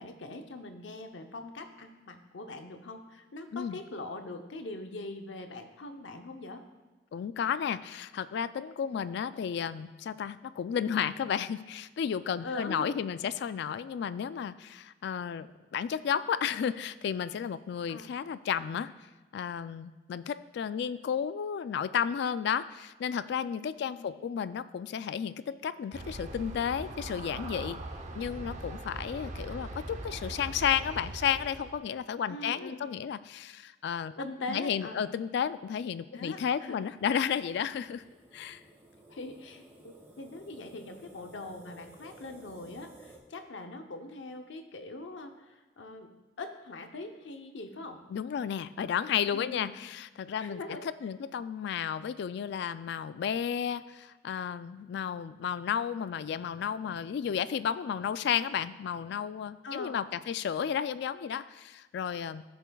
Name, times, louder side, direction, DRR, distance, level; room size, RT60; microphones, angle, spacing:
voice 1, 0.0-6.6 8.9-9.0 12.4-13.0 17.9-18.1 23.9-24.3 32.3-33.0 34.2-35.1 36.1-36.8 39.1-46.1 46.4-48.0 49.3-49.7 50.4-50.9 59.6-60.0, left 2 dB, 80° left, 6 dB, 0.7 m, -42 dB
voice 2, 7.1-15.5 15.7-18.9 19.3-27.8 28.2-38.0 38.3-38.6 48.1-50.6 51.0-62.4, left 8 dB, 65° left, 15 dB, 0.3 m, -32 dB
Aircraft, 25.9-31.7, right 1 dB, 40° right, 0.8 m, -41 dB
sound 1, 36.8-43.2, right 1 dB, 15° right, 1.4 m, -55 dB
14.0 x 6.9 x 2.3 m, 1.3 s
head